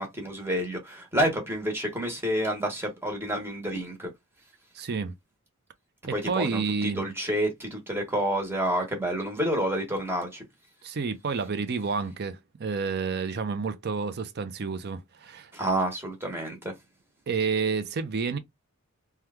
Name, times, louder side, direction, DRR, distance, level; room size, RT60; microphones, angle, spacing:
voice 1, 0.0-4.1 6.1-10.4 15.5-16.7, right 1 dB, 10° right, 1.0 m, -29 dB
voice 2, 4.7-5.1 6.1-7.1 10.8-15.5 17.3-18.4, right 5 dB, 45° right, 0.5 m, -30 dB
2.9 x 2.3 x 3.4 m
head